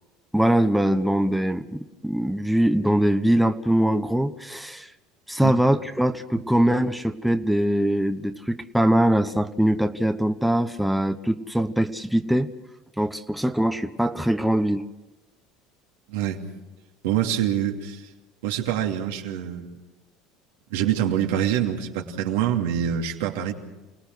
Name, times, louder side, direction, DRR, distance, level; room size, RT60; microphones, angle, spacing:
voice 1, 0.3-4.9 5.3-12.5 13.0-14.9, right 1 dB, ahead, 8 dB, 1.1 m, -22 dB
voice 2, 16.1-16.4 17.0-18.0 18.4-19.7 20.7-23.5, right 10 dB, 85° right, 1 dB, 2.8 m, -25 dB
28.5 x 18.5 x 6.3 m, 1.1 s
supercardioid pair, 100°, 0 cm